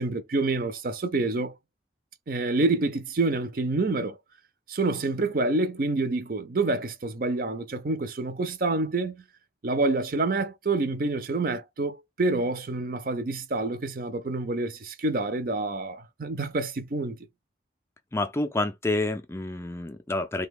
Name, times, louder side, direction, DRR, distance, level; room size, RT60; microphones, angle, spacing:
voice 1, 0.0-1.5 2.3-4.2 4.7-9.2 9.6-17.2, right 2 dB, 50° right, 0.5 m, -27 dB
voice 2, 18.1-20.5, left 2 dB, 15° left, 0.3 m, -28 dB
3.2 x 2.2 x 3.5 m
head